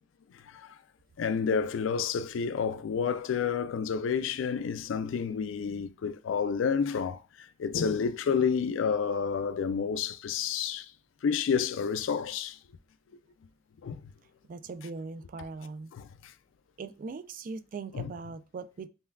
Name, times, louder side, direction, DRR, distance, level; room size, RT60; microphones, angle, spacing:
voice 1, 0.5-0.8 1.2-10.9 11.2-12.6 13.8-14.0 15.9-16.3 17.9-18.1, left 6 dB, 90° left, 0.4 m, -30 dB
voice 2, 14.5-15.9 16.8-18.9, right 4 dB, 45° right, 0.3 m, -40 dB
5.5 x 2.2 x 2.3 m
head